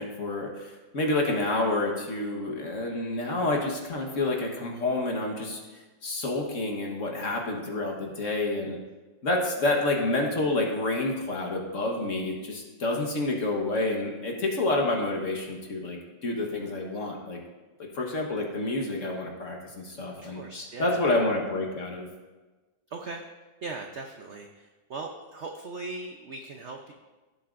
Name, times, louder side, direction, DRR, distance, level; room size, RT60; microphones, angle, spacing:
voice 1, 0.0-5.6 6.0-8.8 9.2-17.4 17.9-20.4 20.8-22.1, left 2 dB, 45° left, 0 dB, 1.4 m, -28 dB
voice 2, 20.2-21.1 22.9-23.2 23.6-26.9, right 3 dB, 70° right, 3 dB, 0.6 m, -39 dB
16.0 x 7.8 x 2.5 m, 1.2 s
omnidirectional pair, 2.1 m